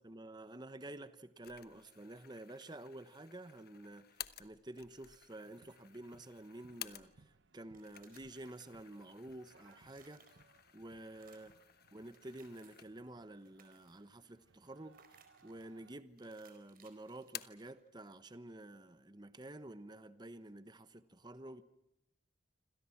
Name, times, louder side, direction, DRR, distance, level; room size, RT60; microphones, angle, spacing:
voice 1, 0.0-10.3 10.7-11.5 11.9-21.6, right 1 dB, 25° right, 1.1 m, -50 dB
sound 1, 1.4-7.4 7.8-13.2 13.6-13.7 14.6-15.2 15.6-16.3 16.6-17.7, left 12 dB, 60° left, 1.1 m, -54 dB
sound 2, 5.4-16.0, right 4 dB, 90° right, 1.0 m, -68 dB
sound 3, 7.6-9.1 9.4-10.7 11.1-11.6 12.0-13.0 13.3-14.1 14.9-15.7 16.2-17.9, right 6 dB, 50° right, 4.4 m, -67 dB
27.0 x 27.0 x 6.0 m
head